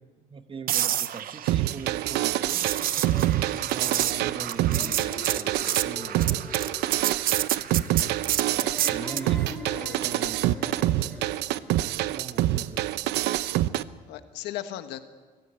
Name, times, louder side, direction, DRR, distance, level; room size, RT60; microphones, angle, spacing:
voice 1, 0.0-2.7 3.5-6.7 8.4-10.5 12.0-13.2, right 5 dB, 30° right, 1.4 m, -42 dB
sound 1, 0.7-9.3 13.5-13.7, right 11 dB, 60° right, 0.9 m, -30 dB
sound 2, 1.5-13.8, right 14 dB, 85° right, 0.7 m, -26 dB
sound 3, 2.7-11.8, left 1 dB, 5° left, 4.2 m, -43 dB
voice 2, 9.6-10.3 14.1-15.0, left 13 dB, 85° left, 1.5 m, -37 dB
25.0 x 15.0 x 8.8 m
cardioid pair, 110°, 17 cm